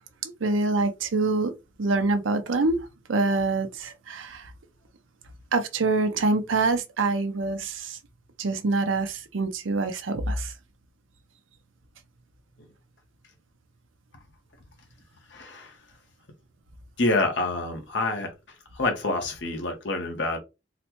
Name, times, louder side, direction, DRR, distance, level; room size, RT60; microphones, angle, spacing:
voice 1, 0.2-1.5 1.8-4.5 5.5-8.0 8.4-10.5, right 3 dB, 90° right, 0.6 m, -25 dB
voice 2, 15.3-15.8 17.0-18.3 18.7-20.4, left 2 dB, 65° left, 0.9 m, -27 dB
4.0 x 2.1 x 2.9 m
head